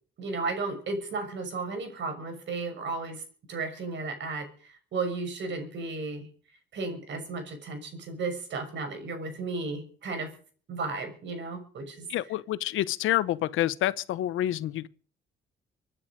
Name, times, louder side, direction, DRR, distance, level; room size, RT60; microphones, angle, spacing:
voice 1, 0.2-3.2 3.5-6.3 6.7-10.3 10.7-12.1, right 3 dB, 65° right, 6.3 m, -34 dB
voice 2, 12.1-14.9, left 13 dB, 85° left, 1.0 m, -28 dB
26.0 x 9.8 x 5.2 m
cardioid pair, 90°, 20 cm